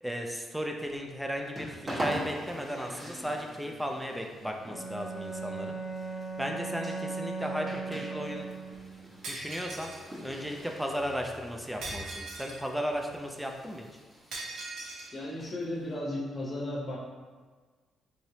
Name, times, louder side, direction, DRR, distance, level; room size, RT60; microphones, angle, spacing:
voice 1, 0.0-5.8 6.4-8.5 9.3-9.9 10.2-13.9, equal, 5° right, 2 dB, 0.3 m, -35 dB
sound 1, 0.8-16.0, equal, 35° right, 1.0 m, -44 dB
Bowed string instrument, 4.6-9.0, right 4 dB, 80° left, 0.7 m, -38 dB
Shatter, 9.2-10.1 11.8-12.7 14.3-15.1, right 2 dB, 75° right, 0.6 m, -40 dB
voice 2, 15.1-17.0, left 1 dB, 35° left, -4 dB, 0.7 m, -35 dB
3.1 x 2.9 x 2.7 m, 1.4 s
cardioid pair, 90°, 0 cm